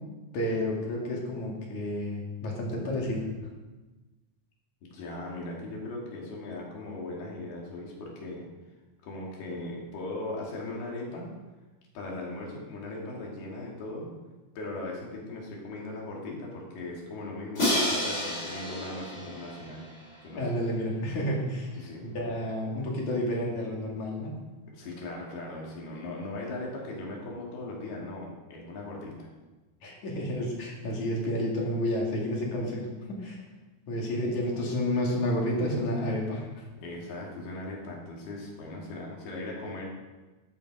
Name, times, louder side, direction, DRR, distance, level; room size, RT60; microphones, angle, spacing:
voice 1, 0.3-3.3 20.4-24.4 29.8-33.4 33.9-36.6, left 1 dB, 50° left, -2 dB, 3.7 m, -30 dB
voice 2, 4.8-8.4 9.0-11.3 11.9-14.1 14.6-19.9 20.2-20.4 21.7-22.1 24.7-29.3 36.8-39.8, left 2 dB, 85° left, -2 dB, 4.9 m, -38 dB
Crash cymbal, 17.6-20.5, left 1 dB, 20° left, 3.8 m, -30 dB
12.5 x 12.0 x 5.0 m, 1.2 s
omnidirectional pair, 4.4 m